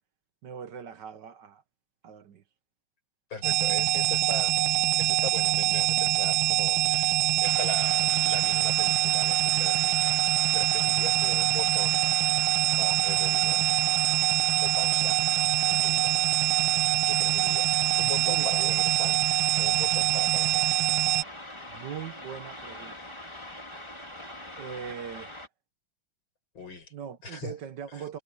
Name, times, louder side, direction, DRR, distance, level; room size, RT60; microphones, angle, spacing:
voice 1, 0.4-1.6 2.0-2.4 11.1-11.4 18.0-18.9 21.7-23.1 24.6-25.4 26.9-28.2, right 8 dB, 60° right, 1.7 m, -41 dB
voice 2, 3.3-10.2 10.5-12.0 12.8-13.7 14.6-15.3 15.7-16.2 17.1-19.3 19.6-20.8 26.5-26.9 27.2-27.6 27.9-28.0, left 4 dB, 75° left, 6.1 m, -40 dB
sound 1, 3.4-21.2, right 15 dB, 80° right, 1.4 m, -24 dB
sound 2, 7.4-25.5, left 1 dB, 15° left, 3.5 m, -43 dB
omnidirectional pair, 2.2 m